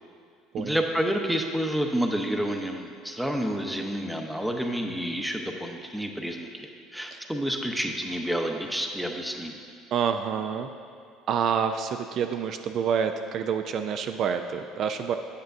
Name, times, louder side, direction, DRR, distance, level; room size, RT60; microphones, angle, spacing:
voice 1, 0.6-9.6, equal, ahead, 3 dB, 0.7 m, -29 dB
voice 2, 9.9-10.7 11.3-15.1, right 7 dB, 55° right, 7 dB, 0.3 m, -27 dB
8.0 x 7.7 x 2.6 m, 2.3 s
supercardioid pair, 85°, 0 cm